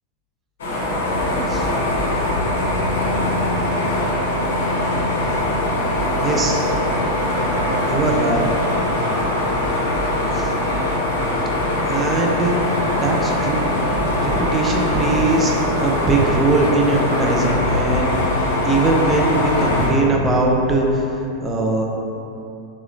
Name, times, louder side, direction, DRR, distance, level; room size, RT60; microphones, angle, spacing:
sound 1, 0.6-19.9, left 1 dB, 60° left, 0.6 m, -21 dB
sound 2, 0.8-19.4, right 2 dB, 40° right, 0.7 m, -34 dB
voice 1, 6.2-6.6 7.9-8.5 10.3-10.5 11.9-12.6 12.9-13.7 14.2-15.5 15.8-18.2 18.7-21.9, right 2 dB, 15° right, -1 dB, 0.4 m, -20 dB
2.9 x 2.9 x 2.5 m, 2.7 s
figure-of-eight pair, 90°, 0 cm